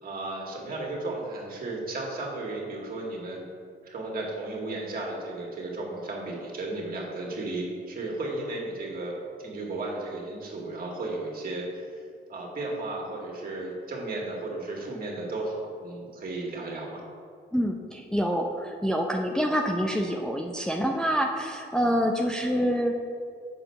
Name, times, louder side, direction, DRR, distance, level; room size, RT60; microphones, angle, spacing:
voice 1, 0.0-3.4 3.8-12.0 12.3-17.0, right 2 dB, 45° right, -2 dB, 2.2 m, -34 dB
voice 2, 17.5-22.9, equal, 5° left, 0 dB, 0.6 m, -26 dB
7.8 x 5.0 x 5.8 m, 2.2 s
cardioid pair, 90°, 20 cm